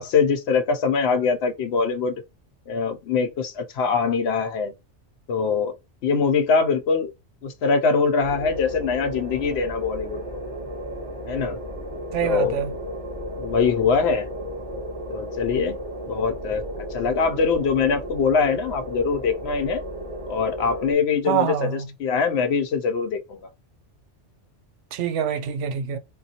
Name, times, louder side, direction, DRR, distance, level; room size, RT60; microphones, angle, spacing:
voice 1, 0.0-2.2 2.7-4.7 5.3-5.7 6.0-7.1 7.4-10.4 11.3-11.6 12.2-12.7 13.4-14.3 15.1-15.8 16.1-16.6 16.9-19.8 20.3-23.5, left 5 dB, 70° left, 0.8 m, -23 dB
sound 1, 8.2-20.9, equal, 30° right, 1.9 m, -34 dB
voice 2, 12.1-12.7 21.3-21.9 24.9-26.0, right 8 dB, 85° right, 0.9 m, -25 dB
3.8 x 2.2 x 2.7 m
omnidirectional pair, 1.2 m